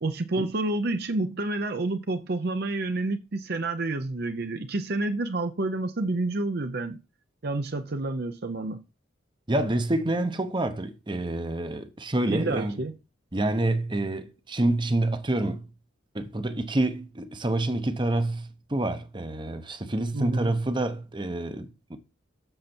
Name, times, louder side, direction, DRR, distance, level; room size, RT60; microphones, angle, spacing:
voice 1, 0.0-7.0 7.4-8.8 12.3-12.9 20.1-20.5, right 2 dB, 55° right, 0.7 m, -29 dB
voice 2, 9.5-12.8 13.3-15.7 16.1-22.0, right 1 dB, 25° right, 0.8 m, -27 dB
7.8 x 6.8 x 4.4 m
head